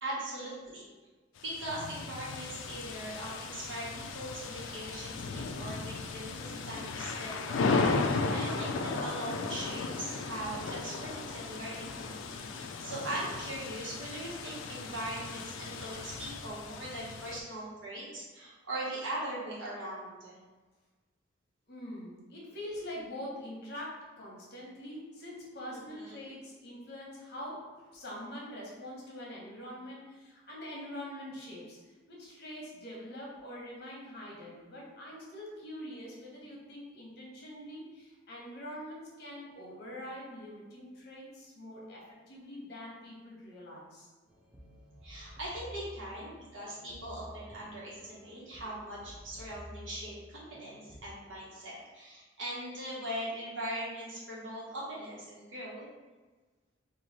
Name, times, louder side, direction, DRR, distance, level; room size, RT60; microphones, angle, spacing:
voice 1, 0.0-0.9 1.4-20.4 25.7-26.3 45.0-55.9, right 1 dB, 80° right, -7 dB, 1.4 m, -40 dB
sound 1, 1.4-17.4, left 4 dB, 85° left, 0.4 m, -36 dB
voice 2, 21.7-44.1, left 1 dB, 60° left, -4 dB, 1.1 m, -44 dB
sound 2, 44.3-51.1, equal, 5° right, 0.5 m, -52 dB
3.1 x 2.7 x 4.0 m, 1.3 s
head